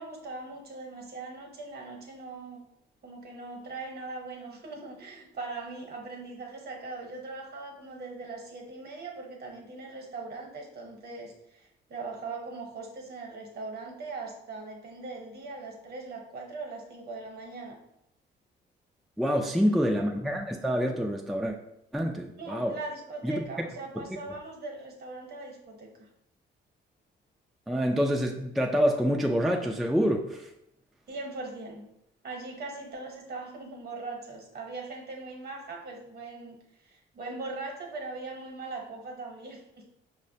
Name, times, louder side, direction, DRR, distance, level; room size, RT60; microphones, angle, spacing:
voice 1, 0.0-2.7 3.0-17.8 19.5-20.1 22.4-25.9 31.1-31.9 32.2-39.6, right 3 dB, 50° right, 1 dB, 0.9 m, -40 dB
voice 2, 19.2-21.6 21.9-22.7 23.2-23.4 27.7-30.5, equal, ahead, 1 dB, 0.3 m, -27 dB
5.4 x 2.2 x 2.6 m, 0.82 s
cardioid pair, 90°, 20 cm